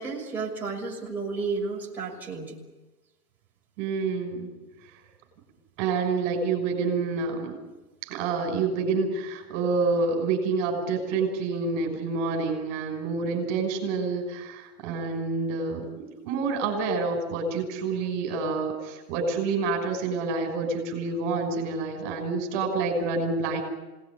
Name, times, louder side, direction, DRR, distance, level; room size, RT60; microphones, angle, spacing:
voice 1, 0.0-2.6, right 4 dB, 5° right, -6 dB, 6.2 m, -32 dB
voice 2, 3.8-4.6 5.8-7.6 8.0-23.6, right 4 dB, 35° right, 3 dB, 6.0 m, -28 dB
27.0 x 19.0 x 9.8 m, 1.1 s
hypercardioid pair, 150°, 48 cm